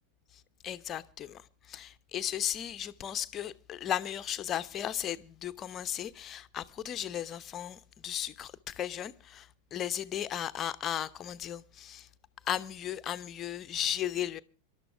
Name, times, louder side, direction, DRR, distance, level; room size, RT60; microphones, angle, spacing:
voice 1, 0.6-12.1 12.4-14.4, left 10 dB, 30° left, 0.9 m, -35 dB
26.0 x 12.0 x 3.5 m
figure-of-eight pair, 90°, 0 cm